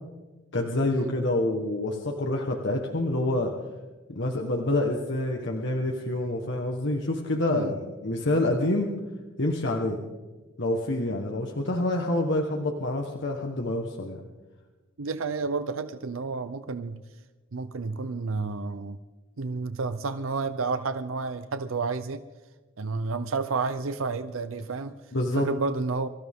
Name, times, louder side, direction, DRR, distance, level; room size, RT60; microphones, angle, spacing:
voice 1, 0.5-3.5 4.1-8.9 9.4-10.0 10.6-14.2 25.1-25.5, left 1 dB, 65° left, 1 dB, 1.5 m, -27 dB
voice 2, 15.0-17.0 17.5-19.0 19.4-22.2 22.8-24.9 25.4-26.1, right 4 dB, 90° right, 11 dB, 0.7 m, -30 dB
24.5 x 14.0 x 3.7 m, 1.2 s
head